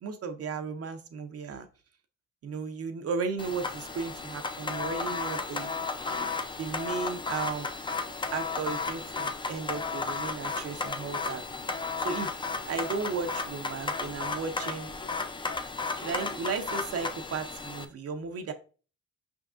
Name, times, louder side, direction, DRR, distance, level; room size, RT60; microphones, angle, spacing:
voice 1, 0.0-1.7 2.4-5.7 6.6-7.7 8.3-11.4 12.0-14.9 15.9-18.5, right 5 dB, 55° right, 6 dB, 0.5 m, -35 dB
sound 1, 3.4-17.9, left 4 dB, 15° left, 0.4 m, -34 dB
5.1 x 3.5 x 2.4 m, 0.37 s
cardioid pair, 90°, 29 cm